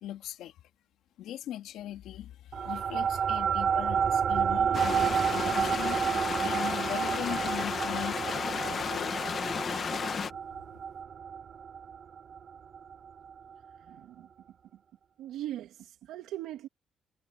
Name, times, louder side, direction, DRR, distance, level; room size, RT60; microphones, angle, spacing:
voice 1, 0.0-0.6 1.2-6.0 6.4-9.2, left 12 dB, 85° left, 2.4 m, -40 dB
sound 1, 2.5-13.3, right 7 dB, 55° right, 0.5 m, -30 dB
sound 2, 4.7-10.3, left 6 dB, 50° left, 1.9 m, -33 dB
voice 2, 13.8-14.3 15.2-16.7, right 13 dB, 90° right, 2.8 m, -40 dB
cardioid pair, 90°, 0 cm